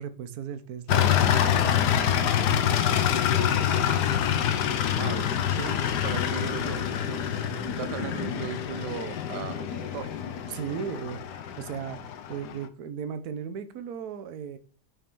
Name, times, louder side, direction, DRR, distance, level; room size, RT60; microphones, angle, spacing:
voice 1, 0.0-2.7 10.5-14.6, right 7 dB, 70° right, 11 dB, 1.3 m, -37 dB
sound 1, 0.9-12.6, left 9 dB, 80° left, 1.4 m, -26 dB
sound 2, 2.8-11.3, right 2 dB, 15° right, 0.6 m, -47 dB
voice 2, 4.9-7.4 7.8-10.1, right 10 dB, 90° right, 10 dB, 1.4 m, -37 dB
6.3 x 5.3 x 4.5 m, 0.42 s
omnidirectional pair, 1.7 m